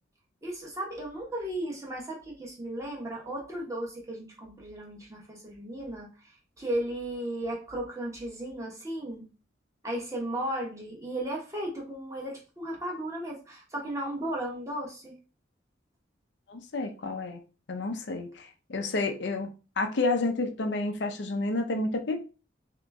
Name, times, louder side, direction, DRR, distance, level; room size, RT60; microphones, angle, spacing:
voice 1, 0.4-6.1 6.6-9.3 9.8-15.1, right 1 dB, 15° right, 1.2 m, -35 dB
voice 2, 16.5-17.4 17.7-19.5 19.8-22.2, left 2 dB, 70° left, 0.6 m, -30 dB
3.7 x 2.9 x 3.5 m
head